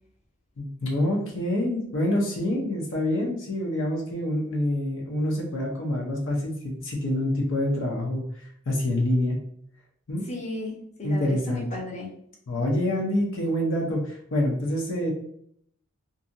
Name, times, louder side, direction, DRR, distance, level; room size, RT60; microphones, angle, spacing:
voice 1, 0.6-9.4 10.1-10.3 11.0-11.6 12.5-15.1, left 1 dB, 65° left, -1 dB, 0.7 m, -26 dB
voice 2, 10.3-12.1, left 2 dB, 35° left, -3 dB, 0.7 m, -35 dB
2.7 x 2.6 x 2.6 m, 0.66 s
head